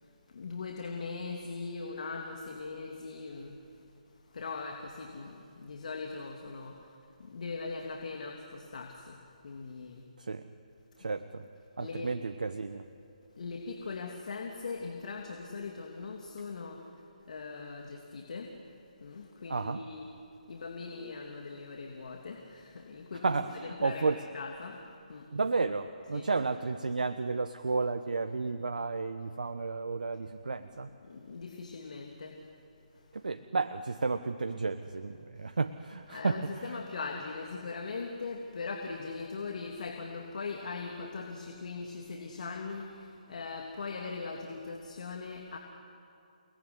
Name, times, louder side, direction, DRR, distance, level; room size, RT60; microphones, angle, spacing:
voice 1, 0.3-3.6 4.3-6.7 7.2-9.2 9.4-10.0 11.8-12.1 13.4-16.8 17.3-18.5 19.0-20.1 20.5-23.4 23.6-24.1 24.3-24.8 25.1-25.2 26.1-26.3 31.1-32.3 36.1-42.9 43.3-45.6, left 4 dB, 60° left, 2 dB, 3.0 m, -40 dB
voice 2, 11.0-11.4 11.8-12.8 19.5-19.8 23.2-24.2 25.3-30.9 33.1-36.8, right 4 dB, 75° right, 9 dB, 1.2 m, -32 dB
29.5 x 20.0 x 9.8 m, 2.6 s
figure-of-eight pair, 145°, 4 cm